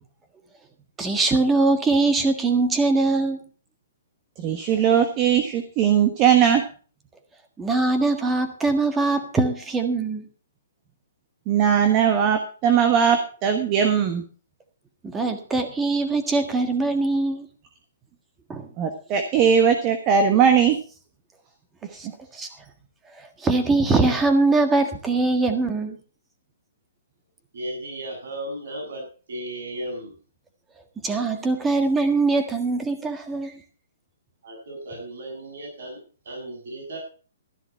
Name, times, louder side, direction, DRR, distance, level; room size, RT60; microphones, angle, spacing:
voice 1, 1.0-3.4 7.6-10.3 15.0-17.5 18.5-18.7 21.9-22.1 22.3-22.5 23.2-26.0 31.0-33.6, right 3 dB, 10° right, 6 dB, 1.6 m, -22 dB
voice 2, 4.4-6.6 11.5-14.2 18.8-20.8, right 8 dB, 25° right, 7 dB, 1.4 m, -19 dB
voice 3, 27.5-30.1 34.4-37.0, right 1 dB, 65° right, 0 dB, 7.8 m, -35 dB
13.5 x 11.0 x 4.6 m, 0.39 s
hypercardioid pair, 155°, 0 cm